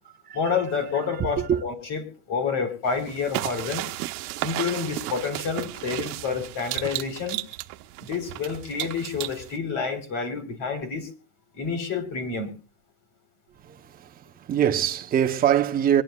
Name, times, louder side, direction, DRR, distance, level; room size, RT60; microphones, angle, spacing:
voice 1, 0.3-2.0 2.3-3.9 4.4-7.4 8.0-11.1 11.5-12.5, left 5 dB, 45° left, 4.1 m, -29 dB
sound 1, 2.9-9.6, right 18 dB, 85° right, 1.0 m, -34 dB
voice 2, 13.6-16.0, right 9 dB, 20° right, 0.8 m, -23 dB
24.5 x 11.5 x 2.3 m
supercardioid pair, 160°, 44 cm